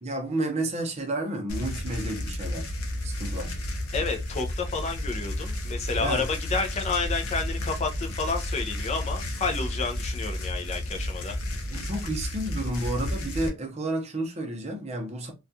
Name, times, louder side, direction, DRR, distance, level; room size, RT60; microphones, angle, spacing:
voice 1, 0.0-2.7 3.0-3.6 6.0-6.3 11.7-15.3, right 1 dB, 30° right, 0.6 m, -31 dB
sound 1, 1.5-13.5, left 1 dB, 85° left, 0.6 m, -32 dB
voice 2, 3.9-11.4, left 4 dB, 30° left, 0.4 m, -30 dB
2.3 x 2.3 x 2.6 m
head